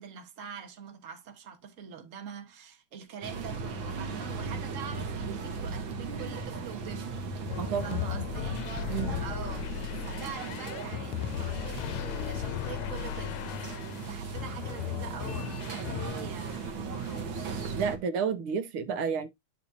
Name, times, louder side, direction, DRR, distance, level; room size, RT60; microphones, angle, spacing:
voice 1, 0.0-17.8, right 7 dB, 40° right, 1.5 m, -44 dB
sound 1, 3.2-18.0, right 4 dB, 65° right, 1.9 m, -37 dB
sound 2, 7.5-16.6 17.0-17.8, left 13 dB, 85° left, 1.5 m, -37 dB
voice 2, 7.6-8.0 8.9-9.2 17.8-19.3, right 6 dB, 80° right, 1.7 m, -31 dB
10.0 x 4.3 x 2.7 m
omnidirectional pair, 2.3 m